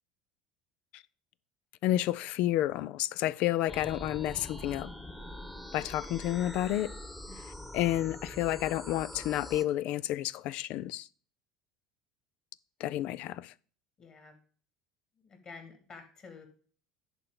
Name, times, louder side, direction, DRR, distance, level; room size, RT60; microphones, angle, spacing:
voice 1, 1.8-4.9 5.7-6.9 7.7-11.1 12.8-13.5, left 14 dB, 55° left, 0.4 m, -30 dB
sound 1, 3.7-9.6, left 1 dB, 10° left, 1.3 m, -44 dB
voice 2, 7.3-7.7 14.0-14.3 15.2-16.5, left 4 dB, 35° left, 3.1 m, -50 dB
10.5 x 4.6 x 5.2 m
hypercardioid pair, 70°, 2 cm